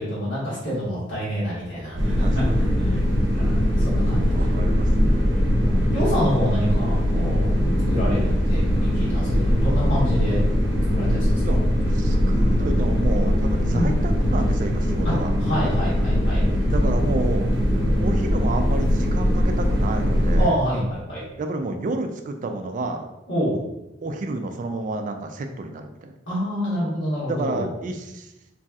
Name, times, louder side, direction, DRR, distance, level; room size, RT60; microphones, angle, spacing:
voice 1, 0.0-3.0 3.3-4.5 5.4-7.6 7.9-10.4 10.9-11.4 13.7-13.9 15.0-15.1 15.4-16.4 20.4-21.2 23.3-23.6 26.3-27.7, equal, 70° left, -8 dB, 1.3 m, -27 dB
sound 1, 2.0-20.4, equal, 65° right, 0.7 m, -21 dB
voice 2, 2.2-2.8 4.3-5.3 11.4-11.6 11.9-15.3 16.7-17.5 18.0-20.6 21.4-23.1 24.0-26.2 27.3-28.3, right 2 dB, 40° right, 6 dB, 0.3 m, -30 dB
3.0 x 2.7 x 2.3 m, 0.91 s
head